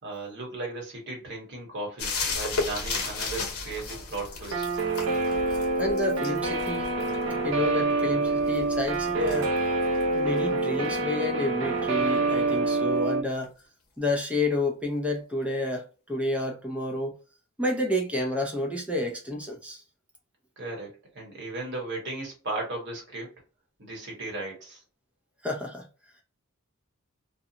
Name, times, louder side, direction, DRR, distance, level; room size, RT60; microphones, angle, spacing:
voice 1, 0.0-4.7 20.6-23.3 23.8-24.8, right 2 dB, 55° right, -1 dB, 1.3 m, -36 dB
sound 1, 2.0-11.4 13.4-13.5, left 4 dB, 80° left, 0.9 m, -35 dB
Guitar, 4.5-13.2, right 3 dB, 70° right, 0.7 m, -26 dB
voice 2, 5.8-6.9 7.4-9.7 10.1-13.5 14.0-17.1 17.6-19.8 25.4-25.9, left 1 dB, 5° right, 1 dB, 0.6 m, -29 dB
2.5 x 2.3 x 2.8 m, 0.35 s
head